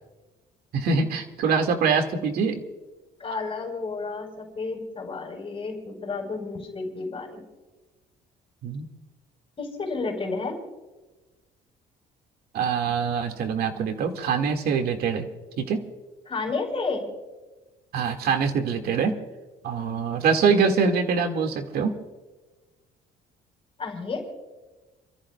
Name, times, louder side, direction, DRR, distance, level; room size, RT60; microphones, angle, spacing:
voice 1, 0.7-2.6 8.6-8.9 12.5-15.3 15.6-15.8 17.9-19.1 19.6-21.9, right 5 dB, 65° right, 4 dB, 2.0 m, -24 dB
voice 2, 3.2-7.4 9.6-10.6 16.3-17.0 23.8-24.2, left 4 dB, 35° left, 1 dB, 4.6 m, -31 dB
29.5 x 14.0 x 2.3 m, 1.2 s
cardioid pair, 110°, 17 cm